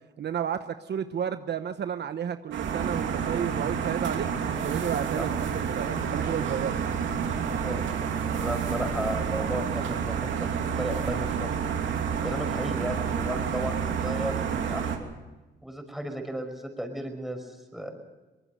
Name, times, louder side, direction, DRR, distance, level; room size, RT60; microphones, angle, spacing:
voice 1, 0.2-4.3 4.6-6.8, right 8 dB, 60° right, 10 dB, 1.0 m, -32 dB
sound 1, 2.5-15.0, right 7 dB, 80° right, 2.7 m, -29 dB
voice 2, 8.2-11.5 12.2-15.1 15.6-17.9, equal, ahead, 5 dB, 5.6 m, -34 dB
24.0 x 20.0 x 6.8 m, 1.1 s
cardioid pair, 80°, 19 cm